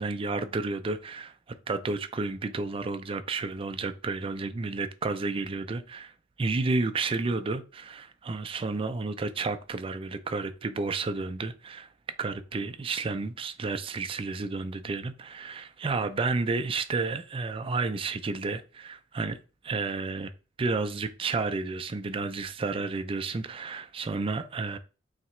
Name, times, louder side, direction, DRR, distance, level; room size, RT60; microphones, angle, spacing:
voice 1, 0.0-1.3 1.7-6.1 6.4-11.9 12.2-19.4 19.6-20.3 20.6-24.8, right 3 dB, 30° right, 0.3 m, -31 dB
3.3 x 2.8 x 4.2 m
head